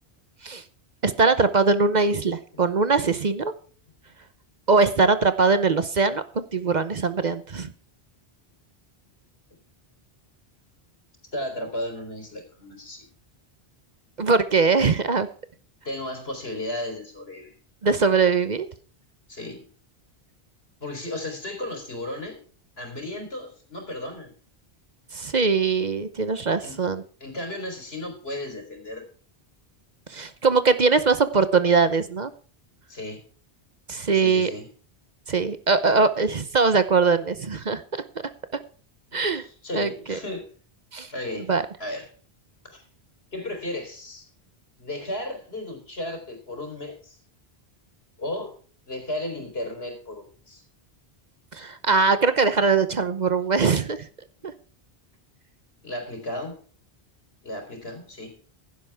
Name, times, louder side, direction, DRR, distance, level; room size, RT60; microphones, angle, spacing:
voice 1, 1.0-3.5 4.7-7.7 14.2-15.3 17.8-18.7 25.1-27.0 30.1-32.3 33.9-34.5 35.3-37.8 39.1-39.4 39.7-40.2 40.9-41.1 41.5-41.6 51.5-54.0 54.4-54.5, right 4 dB, 45° right, 12 dB, 0.9 m, -21 dB
voice 2, 11.3-13.1 15.8-17.5 19.3-19.7 20.8-22.4 22.8-24.3 26.6-26.8 27.2-29.1 32.9-33.2 34.1-34.7 39.1-40.4 41.1-41.5 41.8-42.1 42.6-42.8 43.3-44.3 44.8-47.2 48.2-48.5 48.9-50.6 55.8-56.6 57.4-58.4, left 1 dB, 75° left, 4 dB, 4.1 m, -34 dB
16.0 x 11.5 x 3.5 m, 0.41 s
omnidirectional pair, 1.1 m